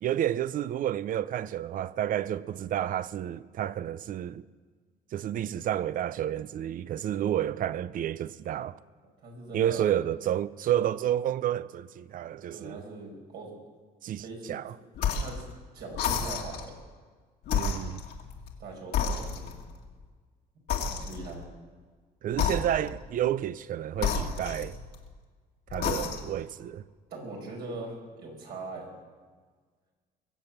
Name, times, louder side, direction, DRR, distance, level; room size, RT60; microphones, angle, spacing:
voice 1, 0.0-4.4 5.1-8.8 9.5-12.8 14.0-14.2 14.5-14.7 17.5-18.0 22.2-24.8 25.7-26.8, right 11 dB, 55° right, 0.6 m, -30 dB
voice 2, 9.2-10.0 12.5-13.5 14.2-14.6 15.1-15.4 15.7-16.7 18.6-19.5 20.9-21.5 27.1-28.9, right 3 dB, 75° right, 5.3 m, -41 dB
sound 1, 15.0-15.4 15.9-16.7 17.4-18.6 18.9-19.7 20.7-21.4 22.3-23.0 24.0-25.1 25.7-26.4, left 6 dB, 75° left, 2.0 m, -31 dB
22.5 x 7.9 x 7.3 m
cardioid pair, 110°, 17 cm